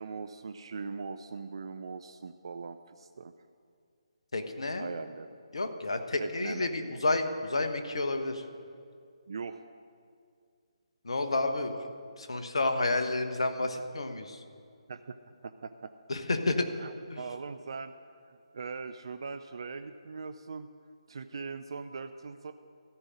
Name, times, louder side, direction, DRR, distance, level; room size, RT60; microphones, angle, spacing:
voice 1, 0.0-3.3 4.8-5.3 6.2-6.9 9.3-9.6 14.9-15.2 15.4-15.9 16.8-17.9 18.3-20.7 21.1-22.5, right 4 dB, 55° right, 10 dB, 0.4 m, -41 dB
voice 2, 4.3-4.9 5.5-8.4 11.0-11.9 12.2-14.4 16.1-16.7 17.1-17.2, left 2 dB, 65° left, 6 dB, 1.2 m, -30 dB
14.0 x 5.3 x 8.8 m, 2.3 s
figure-of-eight pair, 145°, 3 cm